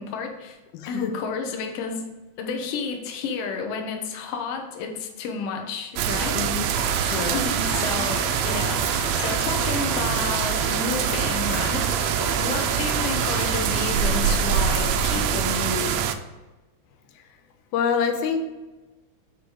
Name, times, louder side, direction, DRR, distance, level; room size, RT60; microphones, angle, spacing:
voice 1, 0.0-0.6 0.9-2.1 2.4-6.6 7.3-12.1 12.4-16.0, left 5 dB, 65° left, 3 dB, 1.7 m, -31 dB
voice 2, 0.7-1.1 6.3-6.7 7.1-7.4 15.2-15.4 17.7-18.4, left 6 dB, 90° left, 6 dB, 2.2 m, -26 dB
sound 1, 6.0-16.1, right 8 dB, 90° right, 1.4 m, -24 dB
Toilet flush / Fill (with liquid), 6.7-15.2, equal, 15° right, 2.0 m, -33 dB
6.9 x 4.7 x 4.8 m, 1.1 s
omnidirectional pair, 3.4 m